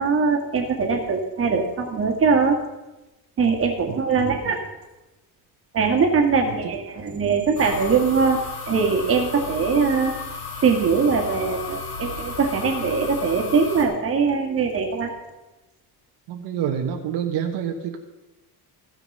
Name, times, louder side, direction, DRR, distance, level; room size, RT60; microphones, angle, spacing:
voice 1, 0.0-2.6 3.4-4.6 5.7-8.4 8.7-10.1 10.6-15.1, right 5 dB, 35° right, 2 dB, 1.9 m, -21 dB
voice 2, 3.9-4.6 6.5-6.6 16.3-18.0, right 8 dB, 85° right, 4 dB, 1.3 m, -28 dB
sound 1, 7.6-13.8, left 4 dB, 75° left, 2.5 m, -34 dB
14.5 x 6.3 x 5.5 m, 1.0 s
cardioid pair, 150°, 40 cm